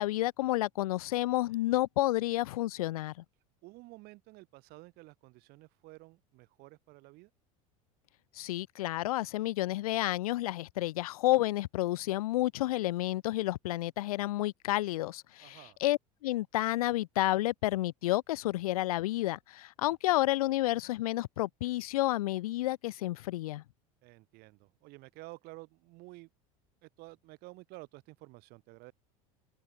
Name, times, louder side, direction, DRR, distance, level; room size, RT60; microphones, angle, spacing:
voice 1, 0.0-3.1 8.3-23.6, left 16 dB, 85° left, 0.7 m, -30 dB
voice 2, 3.6-7.3 15.4-15.8 24.0-26.3 26.8-28.9, right 22 dB, 60° right, 5.1 m, -52 dB
supercardioid pair, 100°, 18 cm